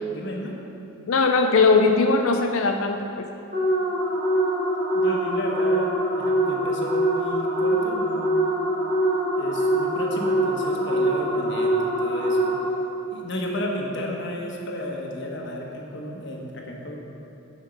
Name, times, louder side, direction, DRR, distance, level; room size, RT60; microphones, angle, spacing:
voice 1, 0.1-0.6 4.9-8.4 9.4-12.5 13.1-17.0, left 1 dB, 55° left, 0 dB, 1.3 m, -33 dB
voice 2, 1.1-3.3, left 4 dB, 80° left, 5 dB, 0.5 m, -20 dB
sound 1, 3.5-12.9, right 1 dB, 40° right, 1.8 m, -23 dB
9.8 x 5.5 x 6.4 m, 2.8 s
head